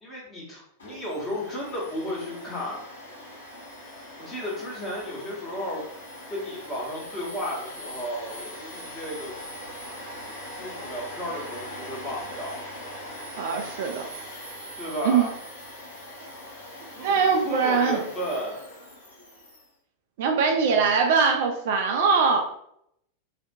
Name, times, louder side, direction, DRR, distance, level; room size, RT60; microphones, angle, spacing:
voice 1, 0.0-2.8 4.2-5.8 6.3-9.3 10.5-12.6 14.8-15.3 16.9-18.6, equal, 20° left, -5 dB, 1.1 m, -33 dB
Domestic sounds home sounds, 0.8-19.7, left 1 dB, 70° left, 0.9 m, -41 dB
voice 2, 13.4-14.1 15.0-15.3 17.0-18.0 20.2-22.4, right 5 dB, 50° right, 3 dB, 0.3 m, -22 dB
2.4 x 2.1 x 2.6 m, 0.74 s
figure-of-eight pair, 90°, 0 cm